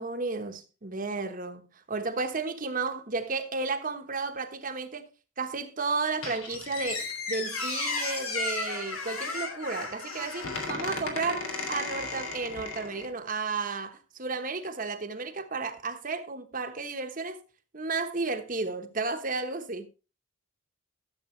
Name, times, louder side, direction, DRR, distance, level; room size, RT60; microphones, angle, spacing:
voice 1, 0.0-5.1 5.4-17.4 17.7-19.9, right 4 dB, 40° right, 1.1 m, -33 dB
Squeak, 6.2-13.1, left 3 dB, 80° left, 2.9 m, -34 dB
13.5 x 7.5 x 3.2 m
head